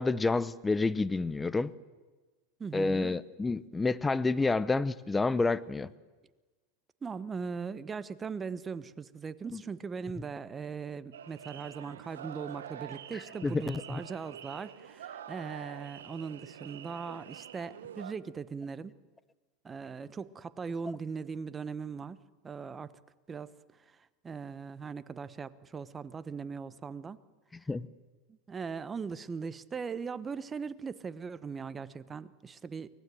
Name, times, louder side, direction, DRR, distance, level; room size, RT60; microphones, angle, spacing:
voice 1, 0.0-1.7 2.7-5.9 9.5-9.6 13.4-14.0 27.7-27.9, left 3 dB, 15° left, 17 dB, 0.8 m, -29 dB
voice 2, 2.6-3.1 7.0-19.0 19.6-22.9 23.3-23.5 23.9-24.0 24.2-27.2 28.5-32.9, right 5 dB, 20° right, 15 dB, 1.0 m, -39 dB
sound 1, 11.1-18.1, right 9 dB, 85° right, 1.1 m, -46 dB
24.5 x 18.5 x 7.8 m, 1.3 s
hypercardioid pair, 100°, 0 cm